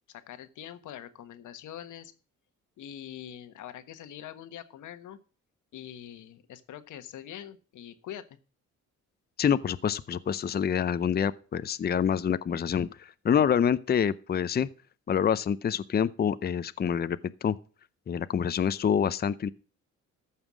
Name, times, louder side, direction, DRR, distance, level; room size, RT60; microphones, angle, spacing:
voice 1, 0.1-2.1 2.8-5.2 5.7-8.4, left 10 dB, 80° left, 1.3 m, -44 dB
voice 2, 9.4-14.7 15.1-17.6 18.1-19.5, left 8 dB, 30° left, 0.6 m, -27 dB
14.0 x 5.7 x 6.2 m
cardioid pair, 90°, 30 cm